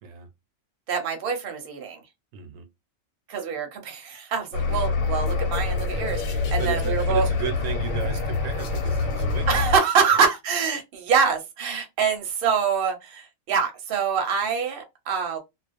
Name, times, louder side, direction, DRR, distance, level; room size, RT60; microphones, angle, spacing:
voice 1, 0.9-2.0 3.3-7.3 9.5-15.4, right 6 dB, 50° right, 0.8 m, -25 dB
voice 2, 2.3-2.7 4.7-4.8 6.6-9.6, right 9 dB, 80° right, 1.0 m, -34 dB
sound 1, 4.5-9.8, left 4 dB, 90° left, 1.2 m, -25 dB
2.3 x 2.2 x 2.4 m
omnidirectional pair, 1.4 m